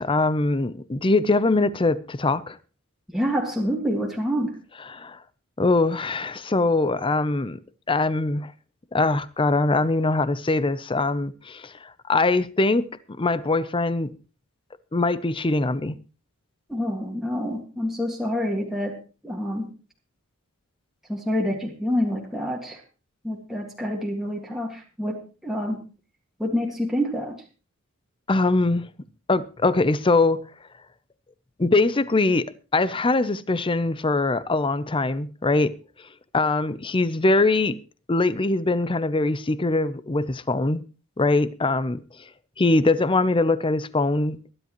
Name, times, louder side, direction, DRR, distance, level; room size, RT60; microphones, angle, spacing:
voice 1, 0.0-2.6 4.9-5.2 5.6-7.6 7.9-8.5 8.9-12.9 13.2-14.1 14.9-16.0 28.3-28.9 29.3-30.4 31.6-35.7 36.3-37.8 38.1-40.8 41.2-42.0 42.6-44.4, left 2 dB, 25° left, 0.6 m, -22 dB
voice 2, 3.1-4.6 16.7-19.0 19.2-19.7 21.1-22.8 23.2-25.8 26.4-27.4, equal, ahead, 1.9 m, -27 dB
22.0 x 11.0 x 3.0 m
head